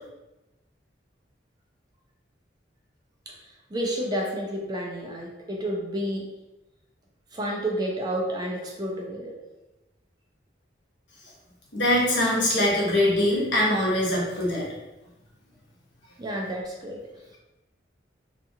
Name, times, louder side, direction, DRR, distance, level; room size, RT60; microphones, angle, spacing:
voice 1, 3.3-6.3 7.3-9.4 16.2-17.4, right 1 dB, 20° right, -2 dB, 0.4 m, -31 dB
voice 2, 11.7-14.7, left 1 dB, 75° left, -5 dB, 0.9 m, -23 dB
2.8 x 2.4 x 2.7 m, 1.0 s
head